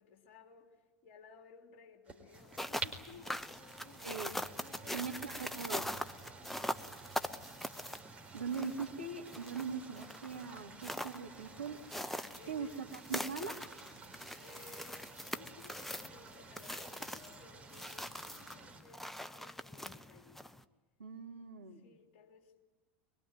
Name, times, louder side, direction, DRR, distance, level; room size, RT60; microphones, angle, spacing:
voice 1, 0.0-4.2 4.6-5.7 6.3-6.9 12.3-12.8 13.1-13.7 14.3-20.5 21.7-22.6, left 5 dB, 50° left, 3.5 m, -58 dB
sound 1, 2.0-18.8, right 4 dB, 20° right, 4.4 m, -52 dB
sound 2, 2.4-20.6, left 1 dB, 5° left, 0.9 m, -43 dB
voice 2, 4.9-5.9 8.3-11.8 12.5-13.6 21.0-21.8, right 5 dB, 75° right, 2.1 m, -41 dB
23.5 x 23.0 x 9.3 m
figure-of-eight pair, 80°, 6 cm